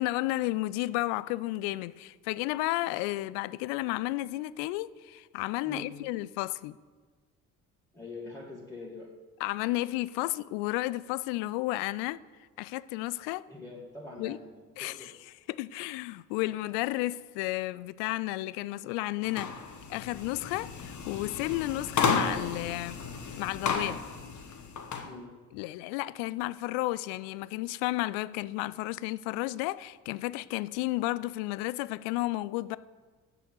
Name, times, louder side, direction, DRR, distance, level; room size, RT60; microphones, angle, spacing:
voice 1, 0.0-6.8 9.4-12.2 12.6-13.4 14.2-14.4 14.8-15.1 15.5-19.5 19.9-23.0 23.4-24.0 25.5-32.8, left 18 dB, 60° left, 0.5 m, -32 dB
voice 2, 5.6-6.0 7.9-9.1 13.5-15.1 25.0-25.3, left 2 dB, 5° left, 2.0 m, -44 dB
sound 1, 19.2-25.1, left 5 dB, 40° left, 1.3 m, -33 dB
7.0 x 6.9 x 7.8 m
hypercardioid pair, 55°, 46 cm